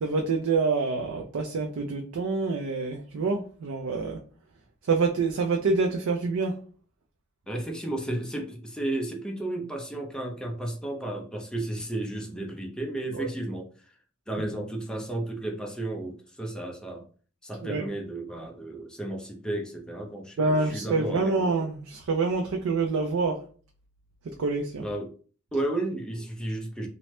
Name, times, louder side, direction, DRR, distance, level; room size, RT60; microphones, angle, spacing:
voice 1, 0.0-4.2 4.9-6.6 13.1-13.3 17.6-17.9 20.4-23.4 24.2-24.8, right 4 dB, 90° right, 0.4 m, -26 dB
voice 2, 7.5-13.9 14.3-17.0 17.4-21.5 24.8-25.1 25.5-26.9, right 1 dB, 5° left, 0.4 m, -33 dB
3.0 x 2.1 x 3.0 m
head